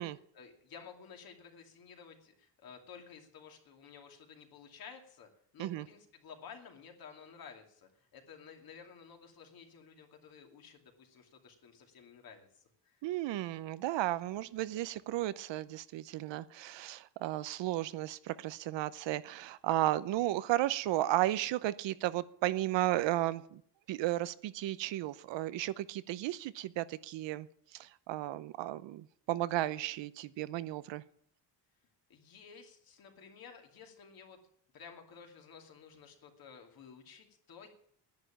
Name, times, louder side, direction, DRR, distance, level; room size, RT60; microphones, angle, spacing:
voice 1, 0.3-13.0 32.1-34.4 34.7-37.7, left 6 dB, 55° left, 4 dB, 2.7 m, -53 dB
voice 2, 13.0-23.6 23.9-31.0, right 15 dB, 80° right, 16 dB, 0.8 m, -34 dB
10.5 x 9.4 x 10.0 m, 0.63 s
cardioid pair, 175°, 43 cm